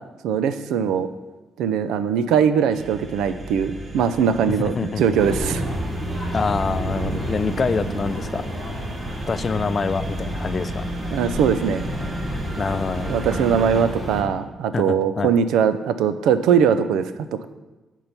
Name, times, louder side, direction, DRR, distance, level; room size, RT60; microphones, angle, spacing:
voice 1, 0.2-1.1 1.6-5.7 11.1-11.8 13.1-17.4, right 7 dB, 85° right, 12 dB, 0.4 m, -21 dB
sound 1, 2.7-13.8, right 1 dB, 40° right, 0.9 m, -34 dB
sound 2, 5.2-14.2, right 1 dB, 20° right, 2.6 m, -30 dB
voice 2, 6.3-8.4 9.3-10.9 12.6-13.2 14.7-15.3, left 5 dB, 40° left, 14 dB, 0.3 m, -25 dB
6.6 x 4.5 x 5.5 m, 1.2 s
cardioid pair, 90°, 0 cm